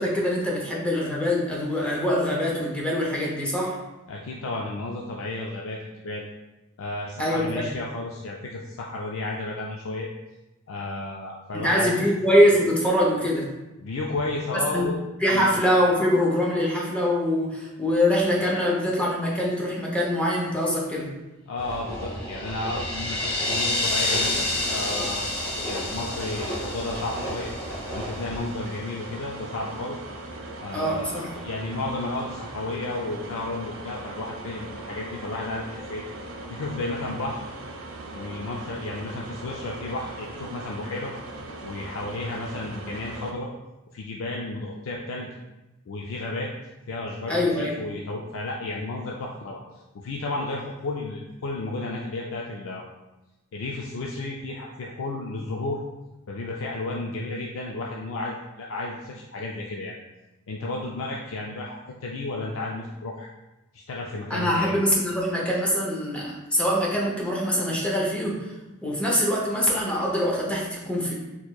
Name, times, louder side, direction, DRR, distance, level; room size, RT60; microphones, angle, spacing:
voice 1, 0.0-3.8 7.2-7.7 11.5-13.5 14.7-14.9 15.2-21.1 30.7-31.3 47.3-47.8 64.3-68.5 68.8-71.1, equal, 5° left, -4 dB, 0.6 m, -23 dB
voice 2, 4.1-6.3 6.8-10.1 10.7-12.1 13.8-15.0 15.3-15.5 21.5-25.3 25.6-27.5 27.9-30.0 30.6-36.0 36.5-37.4 38.1-41.1 41.6-43.5 43.9-45.3 45.9-46.5 46.9-49.6 49.9-52.8 53.5-55.8 56.3-59.9 60.5-61.8 62.0-63.3 63.7-64.8, left 2 dB, 70° left, -2 dB, 0.4 m, -32 dB
sound 1, 21.6-28.4, equal, 90° left, 1.0 m, -36 dB
sound 2, 22.0-28.2, left 2 dB, 50° left, 0.9 m, -29 dB
sound 3, 24.4-43.3, right 2 dB, 70° right, 0.5 m, -39 dB
4.3 x 2.9 x 2.3 m, 1.0 s
head